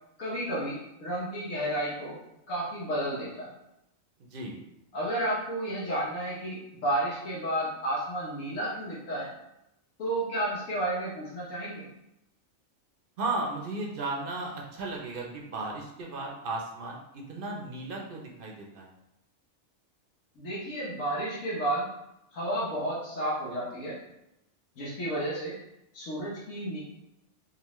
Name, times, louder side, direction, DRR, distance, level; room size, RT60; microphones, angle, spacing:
voice 1, 0.2-2.2 2.5-3.5 4.9-9.3 10.0-11.9 20.4-21.9 22.3-24.0 24.8-25.5 25.9-26.8, right 1 dB, 90° left, -8 dB, 1.3 m, -32 dB
voice 2, 4.2-4.6 13.2-18.9, right 2 dB, 55° right, -1 dB, 0.7 m, -35 dB
3.8 x 2.5 x 3.0 m, 0.85 s
omnidirectional pair, 1.3 m